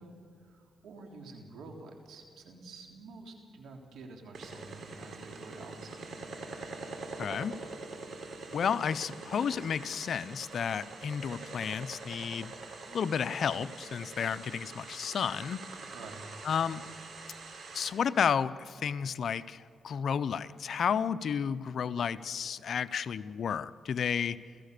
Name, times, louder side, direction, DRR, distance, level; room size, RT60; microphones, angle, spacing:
voice 1, 0.0-6.1 15.9-16.3, right 3 dB, 90° right, 2 dB, 3.4 m, -49 dB
sound 1, 4.3-17.9, right 3 dB, 70° right, 4.0 m, -45 dB
voice 2, 7.2-7.5 8.5-12.5 12.9-15.6 16.4-16.8 17.7-24.4, left 7 dB, 70° left, 14 dB, 0.7 m, -32 dB
30.0 x 14.5 x 6.8 m, 2.3 s
cardioid pair, 75°, 0 cm